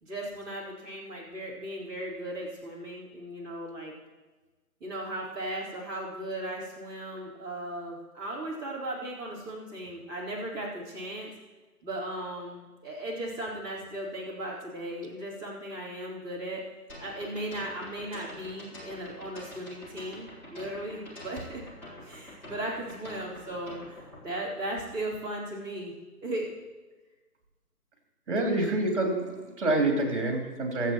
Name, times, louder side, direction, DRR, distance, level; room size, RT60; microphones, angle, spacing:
voice 1, 0.0-3.9 4.8-11.3 11.8-16.6 17.0-21.6 22.0-25.9 26.2-26.5, right 1 dB, 10° right, -8 dB, 2.9 m, -37 dB
sound 1, 16.9-24.2, left 1 dB, 5° left, 1.5 m, -46 dB
voice 2, 28.3-30.9, right 2 dB, 45° right, 1 dB, 3.4 m, -27 dB
23.5 x 8.2 x 3.0 m, 1.2 s
figure-of-eight pair, 155°, 47 cm